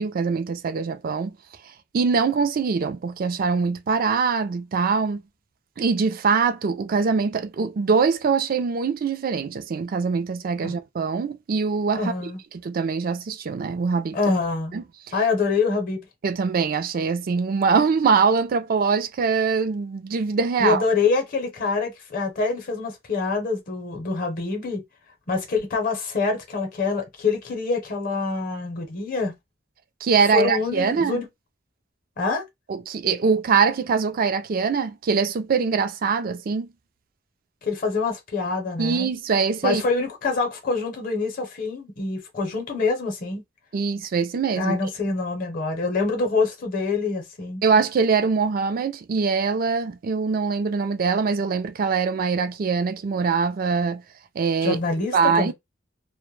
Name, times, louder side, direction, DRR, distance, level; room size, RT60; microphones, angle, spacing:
voice 1, 0.0-1.3 1.9-5.2 5.8-12.1 12.6-14.2 14.7-14.8 16.2-20.8 30.0-31.2 32.7-36.7 38.8-39.8 43.7-44.7 47.6-54.0 54.4-54.8 55.1-55.5, right 5 dB, 50° right, 0.4 m, -23 dB
voice 2, 11.9-12.4 14.1-14.7 15.1-16.0 20.6-24.8 25.3-29.4 30.3-31.3 32.2-32.4 37.6-39.1 39.6-43.4 44.6-47.6 54.6-55.5, left 4 dB, 50° left, 0.7 m, -25 dB
2.1 x 2.1 x 3.1 m
head